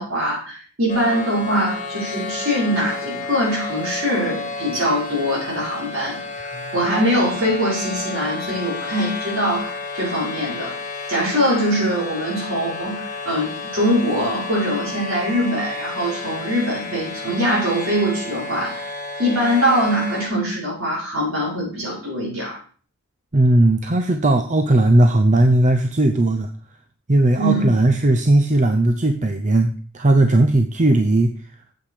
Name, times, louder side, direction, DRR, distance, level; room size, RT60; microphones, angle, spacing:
voice 1, 0.0-6.2 6.7-10.7 11.1-18.8 19.2-22.6 27.4-27.7, equal, 65° right, -4 dB, 5.8 m, -22 dB
sound 1, 0.9-20.3, left 3 dB, 35° left, 1.7 m, -31 dB
voice 2, 23.3-26.5 27.1-31.3, right 1 dB, 35° right, 7 dB, 0.7 m, -17 dB
8.8 x 8.0 x 5.1 m, 0.42 s
head